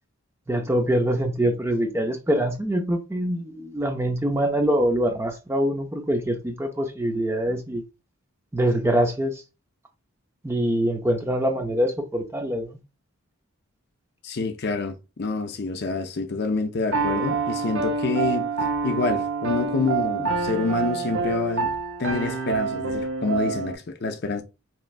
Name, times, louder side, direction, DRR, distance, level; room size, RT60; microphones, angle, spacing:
voice 1, 0.5-7.8 8.5-9.4 10.4-12.8, right 1 dB, 10° right, 0.4 m, -24 dB
voice 2, 14.2-18.5 18.8-21.7 22.0-24.4, left 4 dB, 45° left, 0.5 m, -27 dB
Piano, 16.9-23.8, right 4 dB, 55° right, 0.6 m, -26 dB
4.3 x 3.0 x 2.4 m
head